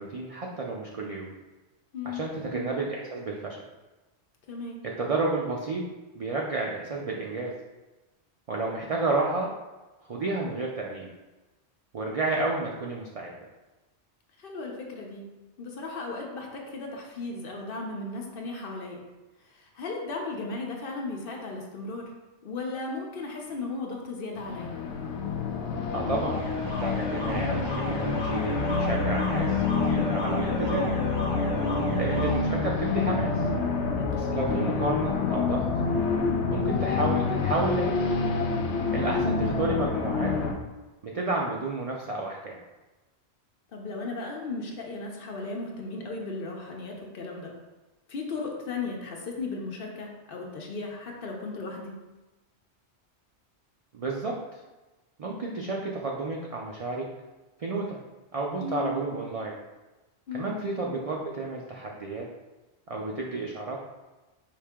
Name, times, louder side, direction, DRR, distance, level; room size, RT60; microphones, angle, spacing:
voice 1, 0.0-1.3 2.1-3.6 5.0-5.8 6.1-7.5 8.5-9.5 10.1-11.1 11.9-13.3 25.9-30.9 32.0-33.4 34.1-35.7 36.5-38.0 38.9-40.3 41.0-42.6 53.9-54.4 55.2-57.1 57.6-58.0 58.3-59.6 60.3-62.3 62.9-63.8, right 3 dB, 65° right, -1 dB, 0.3 m, -31 dB
voice 2, 1.9-2.3 4.5-4.8 14.4-15.2 15.6-19.0 19.4-22.0 22.4-24.8 31.5-31.9 34.0-34.3 43.7-47.5 48.1-51.9 58.6-58.9 60.3-60.5, left 3 dB, 60° left, 0 dB, 0.8 m, -36 dB
sound 1, 24.4-40.5, left 4 dB, 80° left, 0.9 m, -27 dB
Alarm, 25.9-32.4, equal, 15° left, 1.4 m, -38 dB
4.9 x 2.7 x 3.5 m, 1.1 s
omnidirectional pair, 1.2 m